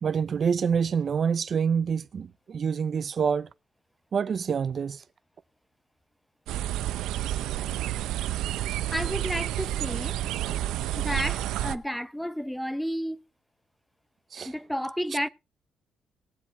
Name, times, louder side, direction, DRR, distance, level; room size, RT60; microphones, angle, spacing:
voice 1, 0.0-3.5 4.1-5.0 14.3-14.5, right 6 dB, 50° right, 0.7 m, -27 dB
sound 1, 6.5-11.8, right 13 dB, 90° right, 0.7 m, -30 dB
voice 2, 8.9-10.2 11.0-13.2 14.4-15.3, equal, 5° left, 0.8 m, -31 dB
20.5 x 7.6 x 3.3 m
cardioid pair, 90°, 0 cm